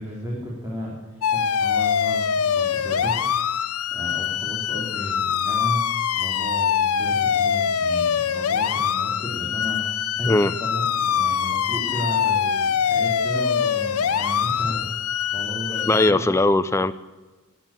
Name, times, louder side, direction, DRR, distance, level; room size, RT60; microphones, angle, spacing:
voice 1, 0.0-3.2 3.4-5.8 6.2-14.9 15.3-16.0, equal, 15° right, -6 dB, 3.6 m, -33 dB
sound 1, 1.2-16.1, left 8 dB, 80° left, 0.6 m, -23 dB
voice 2, 15.9-16.9, left 2 dB, 15° left, 11 dB, 0.4 m, -19 dB
12.5 x 11.0 x 8.8 m, 1.3 s
head